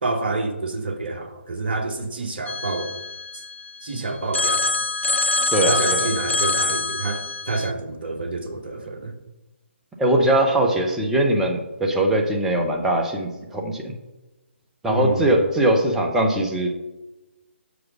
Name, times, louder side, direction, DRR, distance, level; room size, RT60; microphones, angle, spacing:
voice 1, 0.0-3.0 3.8-4.8 5.6-9.1 14.9-15.3, right 3 dB, 50° right, 3 dB, 1.1 m, -28 dB
Telephone, 2.5-3.9 4.3-7.7, left 3 dB, 75° left, 0.6 m, -24 dB
voice 2, 5.5-6.0 10.0-13.9 14.8-16.7, right 1 dB, 5° right, 1 dB, 0.7 m, -21 dB
5.9 x 5.0 x 6.0 m, 1.1 s
figure-of-eight pair, 140°, 7 cm